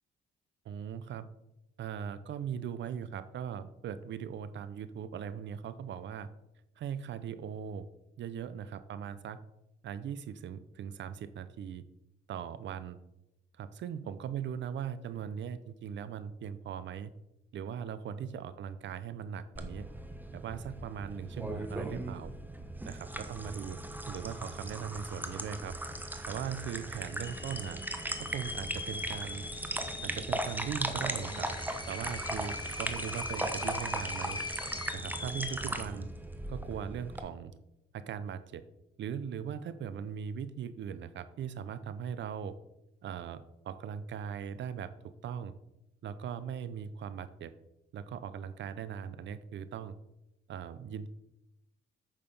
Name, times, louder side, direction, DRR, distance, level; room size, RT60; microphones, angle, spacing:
voice 1, 0.6-1.3 1.8-6.3 6.8-7.9 8.2-9.4 9.8-11.8 12.3-13.0 13.6-17.1 17.5-19.9 20.3-22.3 22.8-23.8 24.1-25.8 26.2-27.8 28.2-29.4 30.0-31.5 31.9-34.4 34.9-36.1 36.5-37.6 37.9-38.6 39.0-42.6 43.0-45.5 46.0-47.5 47.9-49.9 50.5-51.1, right 8 dB, 65° right, 14 dB, 0.7 m, -39 dB
sound 1, 19.6-37.2, right 1 dB, 10° right, 1.1 m, -38 dB
sound 2, 24.8-24.9 25.1-25.7 26.2-26.3 27.0-35.8, left 3 dB, 20° left, 1.2 m, -42 dB
sound 3, 26.6-31.9, right 1 dB, 90° right, 2.0 m, -54 dB
8.9 x 6.6 x 5.4 m, 0.88 s
cardioid pair, 90°, 20 cm